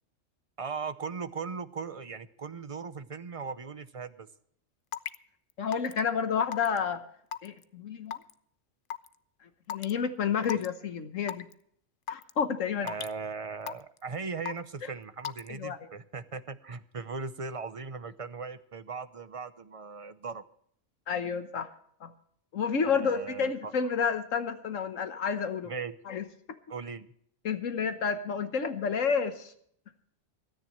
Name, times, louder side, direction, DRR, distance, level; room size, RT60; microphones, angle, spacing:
voice 1, 0.6-4.3 10.4-10.6 12.8-20.4 22.8-23.7 25.7-26.0 26.7-27.1, right 5 dB, 35° right, 12 dB, 0.6 m, -38 dB
Raindrop / Water tap faucet / Drip, 4.9-5.2 5.7-6.0 6.5-6.8 7.3-7.6 8.1-8.3 8.9-9.1 9.7-9.9 10.4-10.7 11.3-11.5 12.1-12.3 12.9-13.1 13.7-14.0 14.5-14.8 15.2-15.5, left 8 dB, 55° left, 0.7 m, -35 dB
voice 2, 5.6-7.0 7.4-8.2 9.7-11.5 12.1-12.9 14.8-14.9 15.5-15.9 21.1-21.7 22.0-22.1 22.5-25.7 26.1-26.2 27.4-29.5, left 6 dB, 80° left, 9 dB, 1.4 m, -30 dB
26.5 x 10.0 x 3.1 m, 0.65 s
omnidirectional pair, 1.3 m